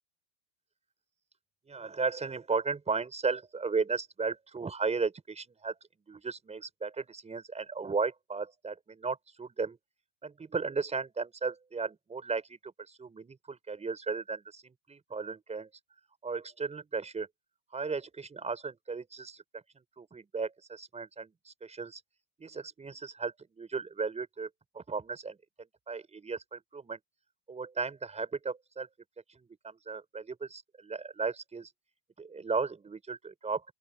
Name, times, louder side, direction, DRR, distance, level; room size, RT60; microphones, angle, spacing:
voice 1, 1.7-5.7 6.1-9.8 10.2-15.7 16.2-17.3 17.7-22.0 22.4-24.5 24.7-25.4 25.9-27.0 27.5-28.9 29.3-31.7 32.2-33.6, right 4 dB, 15° right, 5.7 m, -35 dB
open air
supercardioid pair, 130°, 42 cm